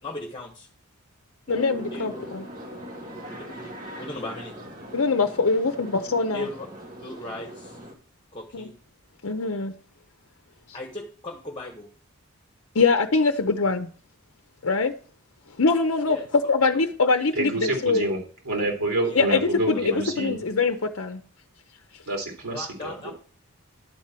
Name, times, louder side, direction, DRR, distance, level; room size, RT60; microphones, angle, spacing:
voice 1, 0.0-0.7 1.9-2.4 3.3-4.6 6.3-6.5 7.0-7.8 8.3-8.8 10.7-11.9 16.1-16.2 19.0-19.2 19.7-20.0 22.5-23.1, left 2 dB, 20° left, 1.3 m, -37 dB
voice 2, 1.5-2.4 4.9-6.5 8.5-8.6 9.2-9.7 12.7-13.9 14.6-14.9 15.6-18.1 19.1-21.2, left 4 dB, 65° left, 0.7 m, -23 dB
sound 1, 1.5-7.9, equal, 35° right, 2.1 m, -40 dB
voice 3, 17.3-18.2 18.4-20.4 22.1-23.1, right 2 dB, 90° right, 2.7 m, -27 dB
11.0 x 4.4 x 7.5 m
head